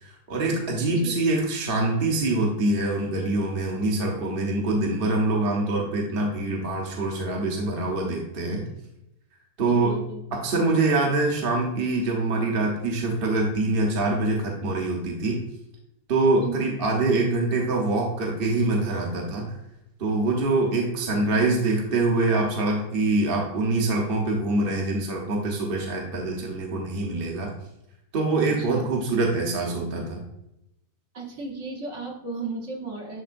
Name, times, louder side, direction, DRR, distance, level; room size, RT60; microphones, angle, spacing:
voice 1, 0.0-8.7 9.6-9.9 10.3-15.4 16.1-19.5 20.0-27.5 28.1-30.2, right 2 dB, 40° right, -1 dB, 1.1 m, -24 dB
voice 2, 9.6-10.2 16.4-16.7 28.6-28.9 31.1-33.2, right 3 dB, 55° right, -1 dB, 1.5 m, -35 dB
10.5 x 3.7 x 2.5 m, 0.84 s
omnidirectional pair, 1.6 m